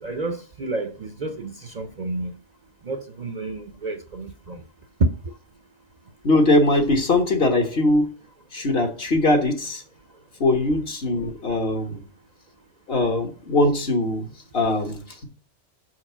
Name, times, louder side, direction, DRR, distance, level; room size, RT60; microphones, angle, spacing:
voice 1, 0.0-2.3 2.8-4.6 5.0-5.1, right 2 dB, 45° right, 0.6 m, -29 dB
voice 2, 6.2-8.1 8.5-9.8 10.4-12.0 12.9-14.2 14.5-15.2, left 2 dB, 55° left, 1.5 m, -21 dB
6.3 x 4.7 x 5.6 m
omnidirectional pair, 1.2 m